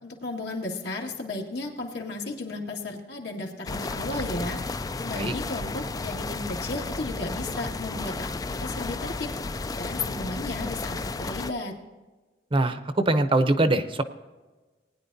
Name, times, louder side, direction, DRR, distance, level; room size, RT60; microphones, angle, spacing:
voice 1, 0.0-4.6 5.0-9.3 9.7-11.8, left 2 dB, 75° left, 0 dB, 2.1 m, -34 dB
sound 1, 3.7-11.5, left 3 dB, 20° left, 0.3 m, -33 dB
voice 2, 12.5-14.0, right 2 dB, 30° right, 9 dB, 0.7 m, -23 dB
19.5 x 9.9 x 2.7 m, 1.2 s
head